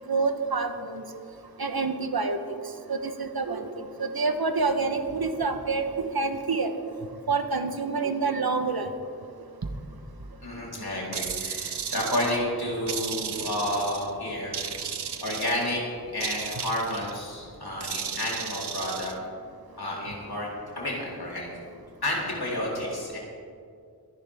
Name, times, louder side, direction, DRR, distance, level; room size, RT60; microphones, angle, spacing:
voice 1, 0.1-1.0 1.6-2.4 2.9-6.7 7.3-8.9, right 4 dB, 65° right, 7 dB, 1.2 m, -27 dB
voice 2, 10.4-14.6 15.2-15.8 16.1-19.1 19.8-21.5 22.0-23.2, left 1 dB, 70° left, -5 dB, 3.9 m, -30 dB
sound 1, 11.1-12.4 12.9-14.1 14.5-15.8 16.2-17.2 17.8-19.1, right 7 dB, 85° right, 0.8 m, -34 dB
23.5 x 11.0 x 3.6 m, 2.3 s
wide cardioid pair, 55°, 39 cm